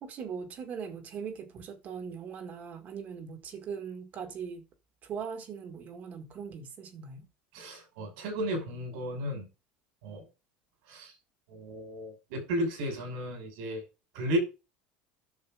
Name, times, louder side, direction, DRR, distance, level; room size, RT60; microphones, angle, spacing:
voice 1, 0.0-4.6 5.0-7.3, right 6 dB, 40° right, 2.0 m, -40 dB
voice 2, 7.5-9.5 10.0-10.2 10.9-11.1 11.5-13.8 14.1-14.4, equal, 85° right, 5.4 m, -34 dB
10.5 x 6.5 x 3.7 m
supercardioid pair, 130°, 4 cm